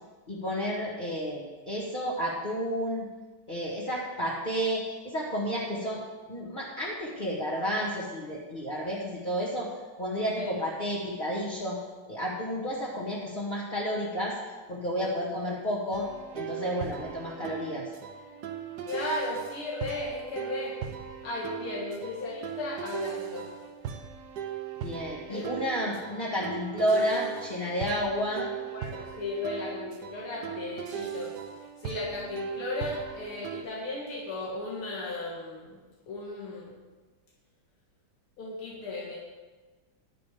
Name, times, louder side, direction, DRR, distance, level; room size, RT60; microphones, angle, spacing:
voice 1, 0.3-3.0 3.5-6.0 6.3-9.7 10.0-11.8 12.1-14.3 14.7-16.1 16.3-17.9 24.8-28.5, equal, 25° left, -6 dB, 1.9 m, -31 dB
sound 1, 15.9-33.6, right 9 dB, 60° right, 1.3 m, -39 dB
voice 2, 18.9-20.7 21.2-23.5 25.3-25.5 28.7-31.3 31.8-35.8 36.1-36.7 38.4-39.2, left 2 dB, 85° left, -4 dB, 2.7 m, -35 dB
11.5 x 9.6 x 5.2 m, 1.3 s
omnidirectional pair, 2.3 m